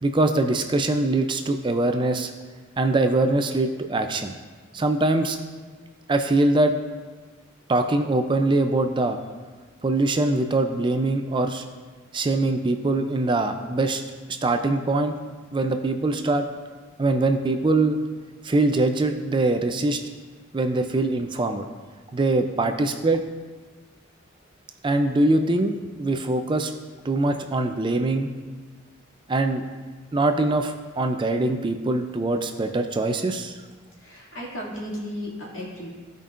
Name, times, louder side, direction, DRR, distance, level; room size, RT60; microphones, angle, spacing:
voice 1, 0.0-2.3 2.8-4.4 4.7-5.4 6.1-6.7 7.7-9.2 9.8-11.6 12.1-14.0 14.4-15.2 15.5-16.5 17.0-18.0 18.4-20.0 20.5-21.7 22.1-23.2 24.8-26.7 27.0-28.3 29.3-29.6 30.1-33.6, right 2 dB, 25° right, 6 dB, 0.4 m, -23 dB
voice 2, 33.9-35.9, equal, 65° left, -5 dB, 2.3 m, -35 dB
15.5 x 5.2 x 2.5 m, 1.4 s
head